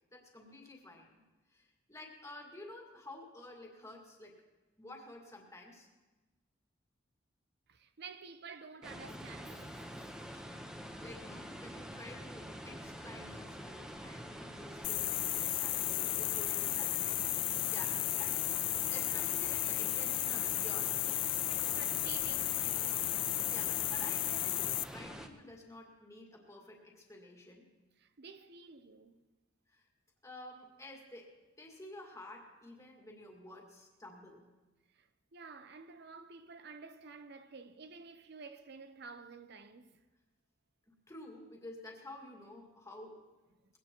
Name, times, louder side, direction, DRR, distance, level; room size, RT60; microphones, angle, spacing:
voice 1, 0.1-1.2 1.5-4.4 4.8-5.9 11.0-17.2 17.7-21.0 23.5-27.7 29.7-29.9 30.2-34.5 40.9-43.2, left 1 dB, 15° left, 2.1 m, -51 dB
voice 2, 7.7-10.1 21.5-23.1 28.0-29.2 35.0-40.0, right 5 dB, 60° right, 0.7 m, -51 dB
sound 1, 8.8-25.3, equal, 5° right, 1.0 m, -46 dB
sound 2, 14.8-24.8, left 17 dB, 80° left, 0.4 m, -34 dB
21.0 x 17.0 x 3.0 m
head